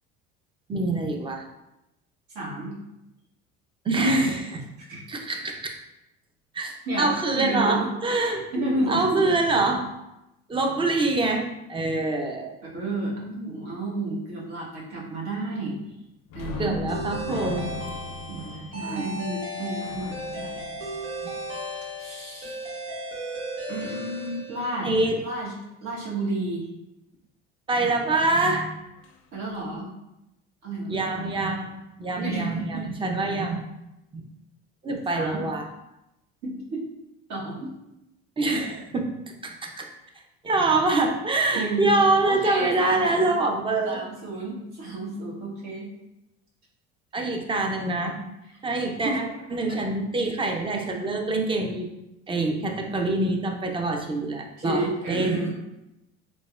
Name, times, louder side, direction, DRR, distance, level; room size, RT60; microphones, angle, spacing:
voice 1, 0.7-1.4 3.8-4.6 5.1-5.6 6.5-8.4 8.9-9.9 10.5-12.5 16.6-17.7 18.8-19.1 24.8-25.2 27.7-28.8 30.9-33.7 34.1-34.2 34.8-35.7 38.4-39.1 39.4-39.9 40.4-44.0 47.1-48.2 48.6-49.3 49.5-51.9 52.3-55.4, right 2 dB, 15° right, 2 dB, 0.5 m, -25 dB
voice 2, 2.3-2.8 3.9-4.3 4.8-5.0 6.9-7.9 8.5-9.2 12.7-15.7 16.3-16.8 18.3-20.7 22.0-22.8 23.7-24.9 25.2-25.5 25.8-26.6 29.3-29.9 30.6-31.0 32.1-32.9 35.1-35.4 36.4-36.8 37.3-37.7 41.5-41.9 42.2-43.4 43.8-45.9 49.0-49.2 49.7-49.8 54.6-55.5, right 2 dB, 65° right, -5 dB, 1.3 m, -31 dB
sound 1, 16.3-21.7 29.0-29.2 29.5-29.7, left 4 dB, 60° left, 0.4 m, -38 dB
sound 2, 16.9-25.0, equal, 80° right, 1.2 m, -35 dB
4.0 x 2.2 x 2.4 m, 0.91 s
supercardioid pair, 90°, 30 cm